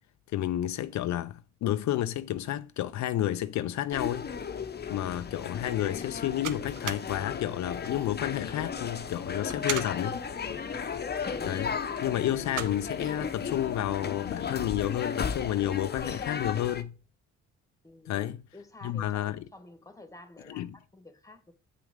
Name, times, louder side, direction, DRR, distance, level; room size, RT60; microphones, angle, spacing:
voice 1, 0.3-4.3 4.9-10.2 11.4-17.0 18.1-18.4 18.8-19.4 20.5-20.8, left 12 dB, 70° left, 0.5 m, -31 dB
sound 1, 3.9-16.8, left 6 dB, 35° left, 0.9 m, -35 dB
sound 2, 5.2-14.4, right 10 dB, 85° right, 1.0 m, -43 dB
voice 2, 17.8-18.3 18.5-21.5, left 2 dB, 10° left, 1.5 m, -50 dB
8.3 x 6.0 x 3.7 m
cardioid pair, 90°, 30 cm